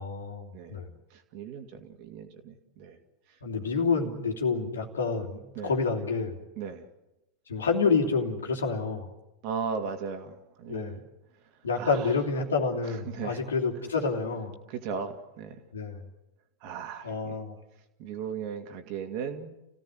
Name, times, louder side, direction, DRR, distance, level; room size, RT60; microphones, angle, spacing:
voice 1, 0.0-0.9 3.4-6.4 7.5-9.1 10.7-11.0 11.6-14.5 15.7-16.0 17.0-17.6, left 4 dB, 70° left, 3 dB, 3.1 m, -28 dB
voice 2, 1.1-3.0 3.3-3.4 5.5-5.8 6.6-6.8 9.4-11.0 11.8-12.1 12.9-13.4 13.8-13.9 14.7-15.6 16.6-17.4 18.0-19.5, right 6 dB, 45° right, 5 dB, 2.6 m, -37 dB
30.0 x 17.0 x 8.0 m, 1.0 s
figure-of-eight pair, 90°, 0 cm